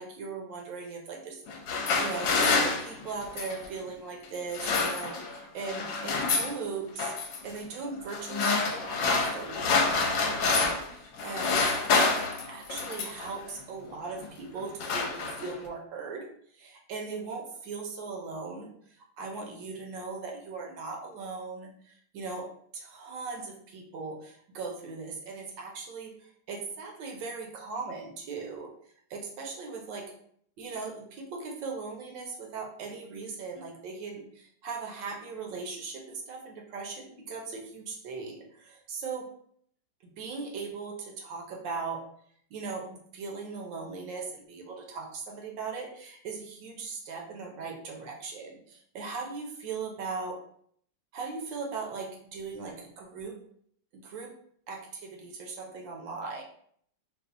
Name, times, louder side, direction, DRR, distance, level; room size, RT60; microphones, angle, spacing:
voice 1, 0.0-1.7 2.0-7.1 7.4-11.7 12.5-16.3 16.5-18.7 19.2-28.7 29.1-30.1 30.6-39.3 40.0-42.0 42.5-50.4 51.1-53.4 53.9-54.3 54.7-56.4, right 4 dB, 75° right, 0 dB, 1.4 m, -39 dB
sound 1, 1.5-3.7 4.3-5.4 5.6-6.6 7.0-7.4 8.1-10.9 11.2-13.3 14.1-14.3 14.6-15.7, left 4 dB, 75° left, 1.2 m, -28 dB
4.1 x 2.4 x 2.5 m, 0.63 s
omnidirectional pair, 2.1 m